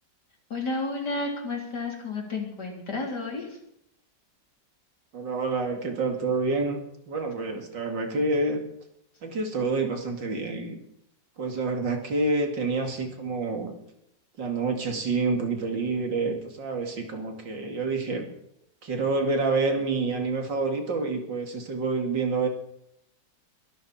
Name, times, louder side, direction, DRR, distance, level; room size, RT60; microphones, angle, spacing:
voice 1, 0.5-3.6, left 3 dB, 65° left, 1 dB, 4.3 m, -31 dB
voice 2, 5.1-6.8 7.1-8.6 9.2-10.8 11.4-13.7 14.4-18.3 18.8-22.5, right 3 dB, 85° right, 4 dB, 3.2 m, -28 dB
22.0 x 13.0 x 4.4 m, 0.76 s
omnidirectional pair, 1.9 m